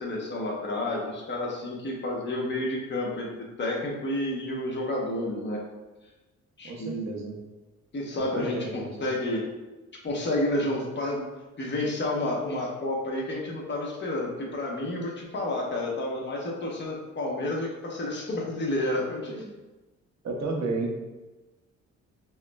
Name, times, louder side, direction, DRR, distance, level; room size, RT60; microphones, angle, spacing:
voice 1, 0.0-5.6 6.6-7.1 7.9-8.6 9.0-9.4 10.0-11.2 11.6-19.3, left 1 dB, 35° left, -2 dB, 0.9 m, -30 dB
voice 2, 6.6-7.4 8.3-9.1 19.3-19.5 20.2-21.0, right 3 dB, 60° right, 1 dB, 0.7 m, -32 dB
5.5 x 2.0 x 2.2 m, 1.1 s
cardioid pair, 90°, 30 cm